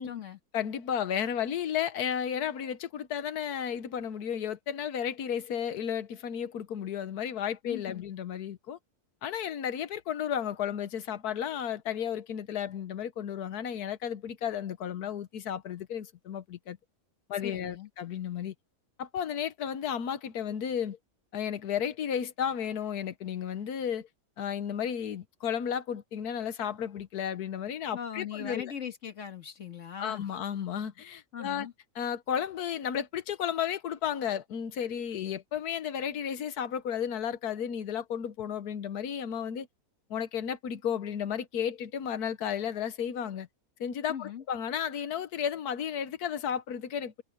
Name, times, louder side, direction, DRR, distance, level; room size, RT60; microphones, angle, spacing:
voice 1, 0.0-0.4 7.6-8.0 17.4-17.9 27.9-30.3 31.3-31.7 44.1-44.4, left 8 dB, 55° left, 2.0 m, -40 dB
voice 2, 0.5-8.8 9.2-16.8 17.3-18.5 19.0-21.0 21.3-24.1 24.4-28.7 30.0-31.7 31.9-39.7 40.1-43.5 43.8-47.2, left 8 dB, 85° left, 1.5 m, -33 dB
omnidirectional pair, 1.6 m